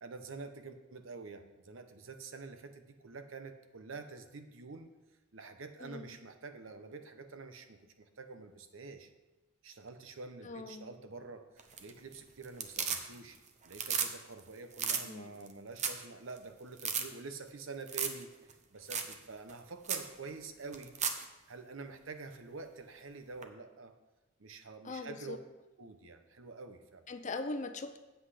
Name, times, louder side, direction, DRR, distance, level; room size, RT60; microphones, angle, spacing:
voice 1, 0.0-4.9 5.3-9.1 9.6-13.4 13.6-20.9 21.2-23.9 24.4-25.4 25.8-27.0, right 4 dB, 70° right, 8 dB, 0.8 m, -47 dB
voice 2, 5.8-6.1 10.4-10.9 15.1-15.5 24.8-25.4 27.1-28.0, left 3 dB, 35° left, 9 dB, 0.6 m, -41 dB
sound 1, 11.6-12.1 12.4-13.4 13.7-14.1 14.4-14.5 14.7-15.0 15.5-15.6 15.8-16.1 16.4-16.5 16.8-17.0 17.9-18.2 18.5-18.6 18.9-19.1 19.5-19.6 19.9-20.1 20.7-21.2 23.4-23.5, right 7 dB, 35° right, 0.8 m, -34 dB
8.0 x 7.9 x 4.9 m, 1.1 s
head